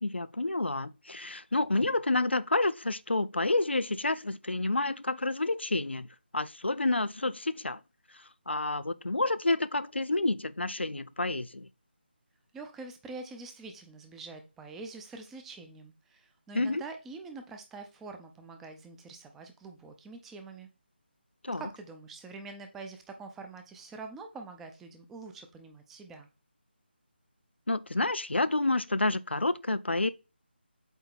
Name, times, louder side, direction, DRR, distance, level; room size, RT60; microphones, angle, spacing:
voice 1, 0.0-6.1 6.3-7.8 8.5-11.7 16.5-16.8 21.4-21.6 27.7-30.1, left 2 dB, 80° left, 0.5 m, -29 dB
voice 2, 12.5-20.7 21.5-26.3, right 3 dB, 5° right, 0.3 m, -45 dB
8.0 x 2.8 x 4.3 m
figure-of-eight pair, 155°, 6 cm